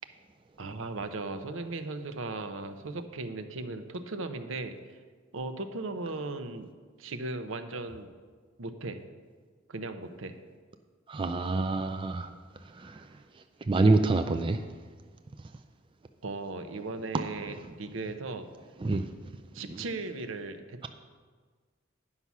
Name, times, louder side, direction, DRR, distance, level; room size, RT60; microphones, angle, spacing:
voice 1, 0.6-4.7 5.3-6.7 7.0-8.1 8.6-9.0 9.7-10.3 16.2-18.5 19.5-20.9, right 3 dB, 75° right, 8 dB, 0.7 m, -37 dB
voice 2, 11.1-12.3 12.7-13.1 13.7-14.6 18.8-19.0 19.7-19.8, right 3 dB, 25° right, 7 dB, 0.4 m, -26 dB
9.8 x 5.6 x 6.0 m, 1.5 s
head